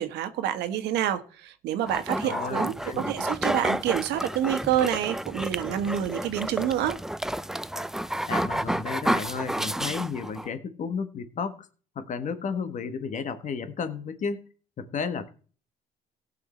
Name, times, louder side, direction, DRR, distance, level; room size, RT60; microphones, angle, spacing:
voice 1, 0.0-2.7 3.1-7.0, right 10 dB, 85° right, 1.4 m, -28 dB
sound 1, 1.9-10.5, right 1 dB, 5° right, 0.4 m, -30 dB
voice 2, 2.2-3.1 8.3-11.7 11.9-14.5 14.8-15.3, left 5 dB, 45° left, 1.4 m, -33 dB
16.5 x 6.7 x 4.4 m
cardioid pair, 110°, 17 cm